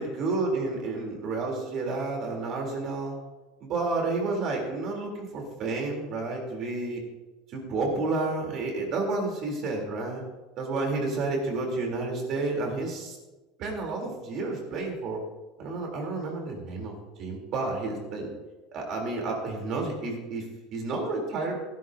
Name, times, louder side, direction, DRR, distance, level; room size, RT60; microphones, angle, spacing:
voice 1, 0.0-3.2 3.6-7.0 7.5-10.2 10.6-13.2 13.6-15.2 15.6-18.3 18.7-21.6, right 3 dB, 40° right, 1 dB, 3.5 m, -30 dB
17.5 x 11.5 x 2.8 m, 1.2 s
supercardioid pair, 150°, 0 cm